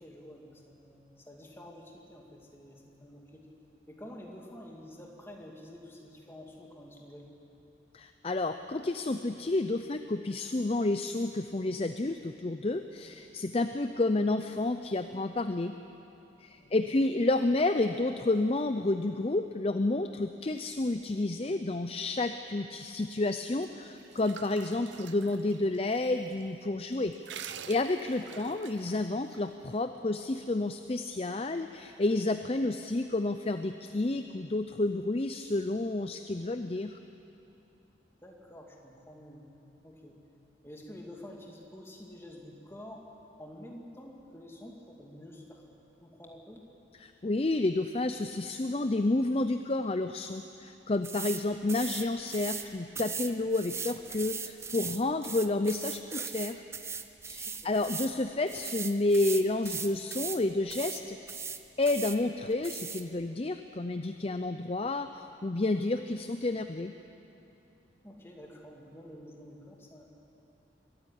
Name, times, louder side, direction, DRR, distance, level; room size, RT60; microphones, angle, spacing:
voice 1, 0.0-3.5 3.9-7.3 16.6-16.8 28.2-28.5 38.2-39.5 39.8-40.2 40.6-43.0 43.4-45.6 46.0-46.6 57.4-57.8 68.0-70.0, left 1 dB, 15° left, 0 dB, 2.5 m, -49 dB
voice 2, 7.9-15.7 16.4-36.9 47.0-56.6 57.2-61.4 61.8-66.9, left 2 dB, 30° left, 9 dB, 0.5 m, -30 dB
sound 1, 23.6-26.1 26.4-26.5 26.9-29.4, right 8 dB, 75° right, 0.8 m, -47 dB
sound 2, 51.0-51.4 51.7-52.7 52.9-58.1 58.5-60.4 60.7-61.0 61.3-62.2 62.6-63.0, right 5 dB, 15° right, 0.6 m, -38 dB
23.5 x 14.0 x 9.9 m, 2.9 s
head